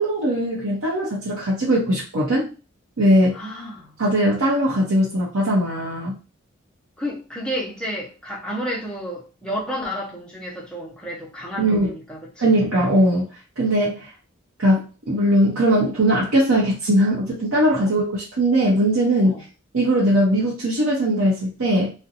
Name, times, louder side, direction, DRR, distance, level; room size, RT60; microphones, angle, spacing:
voice 1, 0.0-2.5 3.0-3.4 4.0-6.2 11.6-11.9 12.4-13.3 13.6-14.1 14.6-19.4 19.7-21.9, right 1 dB, 90° right, 0.8 m, -20 dB
voice 2, 3.3-3.9 7.0-12.6 17.8-17.9 19.2-19.4, equal, 5° left, 0.6 m, -31 dB
2.5 x 2.1 x 2.8 m
head